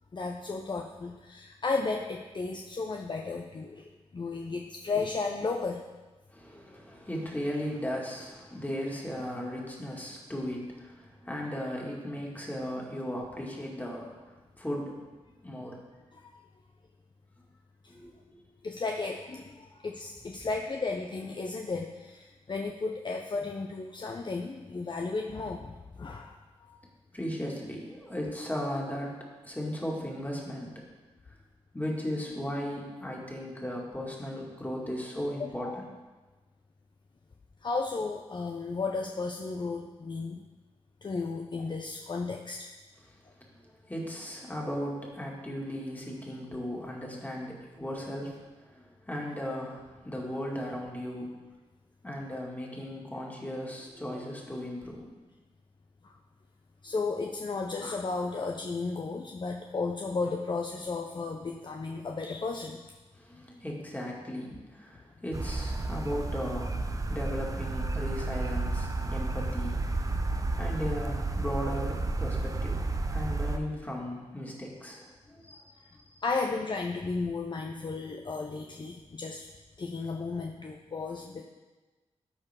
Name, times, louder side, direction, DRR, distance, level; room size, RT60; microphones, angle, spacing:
voice 1, 0.1-5.8 16.1-16.3 17.8-17.9 18.6-26.8 35.4-35.8 37.6-40.4 41.0-42.7 56.0-56.1 56.8-62.9 76.2-79.5 79.8-81.4, left 4 dB, 40° left, 2 dB, 0.6 m, -34 dB
voice 2, 6.3-15.0 15.4-15.9 17.9-18.2 27.1-30.8 31.3-31.4 31.7-35.7 43.5-43.6 43.8-51.3 52.0-55.1 63.1-70.2 70.5-76.2, equal, 15° left, -2 dB, 2.3 m, -37 dB
sound 1, 65.3-73.6, right 2 dB, 30° right, 0.7 m, -31 dB
12.5 x 4.5 x 3.7 m, 1.2 s
cardioid pair, 50°, 12 cm